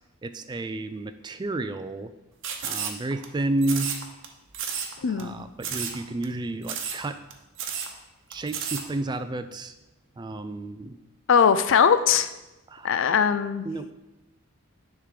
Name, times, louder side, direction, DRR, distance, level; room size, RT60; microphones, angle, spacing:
voice 1, 0.2-2.1 2.6-3.9 5.1-7.2 8.3-9.7 10.2-11.0 12.7-13.0 13.6-13.9, right 2 dB, 20° right, 10 dB, 0.3 m, -31 dB
sound 1, 2.4-3.3 3.6-4.3 4.5-4.9 5.2-5.3 5.6-6.0 6.2-6.3 6.6-7.0 7.3-7.4 7.6-7.9 8.3-8.8, right 7 dB, 55° right, 0.9 m, -31 dB
voice 2, 5.0-5.4 11.3-12.3 12.8-13.6, left 7 dB, 55° left, 12 dB, 0.4 m, -20 dB
10.0 x 3.7 x 4.8 m, 1.0 s
head